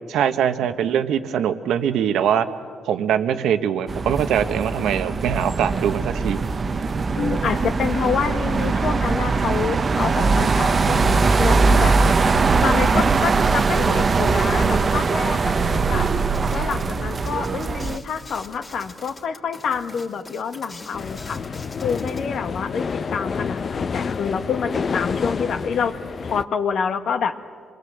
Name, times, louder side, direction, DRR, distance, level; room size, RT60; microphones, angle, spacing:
voice 1, 0.1-2.5 2.9-6.4, right 9 dB, 80° right, 9 dB, 1.2 m, -22 dB
sound 1, 3.9-18.0, right 4 dB, 35° right, 0.9 m, -21 dB
voice 2, 7.1-11.9 12.6-16.1 16.5-21.4 21.8-25.9 26.2-27.3, left 6 dB, 65° left, 8 dB, 1.6 m, -27 dB
sound 2, 16.3-22.3, left 2 dB, 25° left, 2.7 m, -43 dB
sound 3, 20.9-26.4, left 5 dB, 45° left, 0.7 m, -28 dB
27.0 x 21.5 x 8.0 m, 2.1 s
cardioid pair, 90°, 0 cm